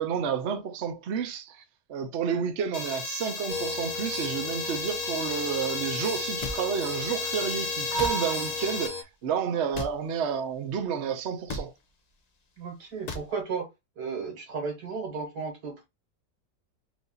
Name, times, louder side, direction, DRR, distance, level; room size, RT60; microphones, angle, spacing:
voice 1, 0.0-1.6 1.9-11.7, right 7 dB, 55° right, 0.8 m, -30 dB
sound 1, 2.7-8.9, left 3 dB, 55° left, 1.6 m, -34 dB
sound 2, 3.5-9.0, left 2 dB, 35° left, 1.1 m, -36 dB
sound 3, 6.4-6.6 8.0-8.1 9.7-9.9 11.5-11.7 13.1-13.3, left 2 dB, 75° left, 0.3 m, -34 dB
voice 2, 12.6-13.7 14.0-15.9, right 5 dB, 75° right, 2.2 m, -34 dB
4.8 x 2.7 x 3.8 m
omnidirectional pair, 1.8 m